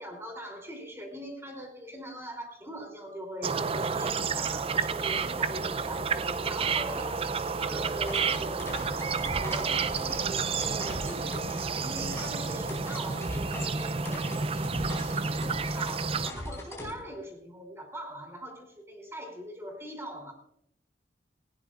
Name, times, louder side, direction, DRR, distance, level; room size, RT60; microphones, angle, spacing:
voice 1, 0.0-20.3, equal, 15° right, 2 dB, 3.1 m, -42 dB
sound 1, 3.4-16.3, right 5 dB, 30° right, 0.4 m, -30 dB
sound 2, 7.9-16.9, left 1 dB, 15° left, 4.4 m, -40 dB
18.5 x 16.5 x 2.5 m, 0.71 s
head